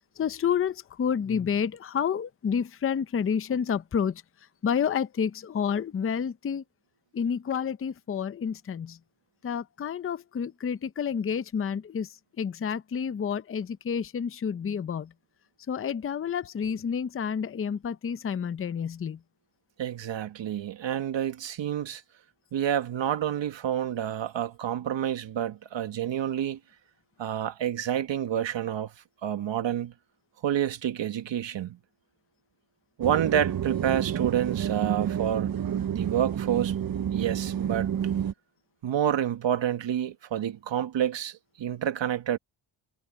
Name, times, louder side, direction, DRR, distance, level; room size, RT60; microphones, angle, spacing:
voice 1, 0.2-4.2 4.6-6.6 7.1-9.0 9.4-12.1 12.4-15.1 15.7-19.2, left 7 dB, 30° left, 0.6 m, -29 dB
voice 2, 19.8-22.0 22.5-26.6 27.2-28.9 29.2-29.9 30.4-31.8 33.0-35.6 35.9-36.8 37.1-37.9 38.8-42.4, right 10 dB, 60° right, 1.6 m, -28 dB
sound 1, 33.0-38.3, right 9 dB, 45° right, 1.0 m, -29 dB
cardioid pair, 130°, 49 cm